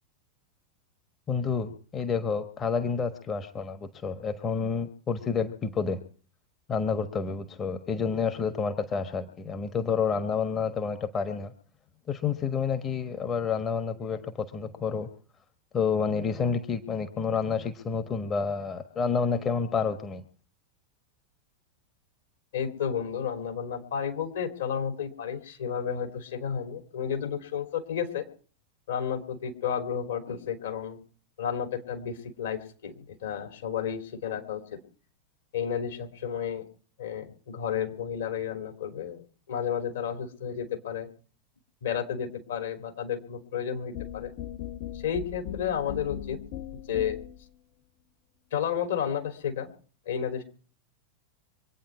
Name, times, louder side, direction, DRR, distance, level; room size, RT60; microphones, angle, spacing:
voice 1, 1.3-6.0 6.7-11.5 12.1-15.1 15.7-20.2, left 5 dB, 25° left, 8 dB, 1.3 m, -29 dB
voice 2, 22.5-28.2 28.9-31.0 31.4-34.8 35.5-36.6 37.0-39.2 39.5-41.1 41.8-44.3 45.0-46.4 46.9-47.2 48.5-49.7 50.0-50.4, left 8 dB, 60° left, 4 dB, 3.3 m, -32 dB
sound 1, 43.9-47.5, left 11 dB, 45° left, 1.2 m, -38 dB
25.0 x 9.3 x 4.8 m, 0.43 s
figure-of-eight pair, 90°, 0 cm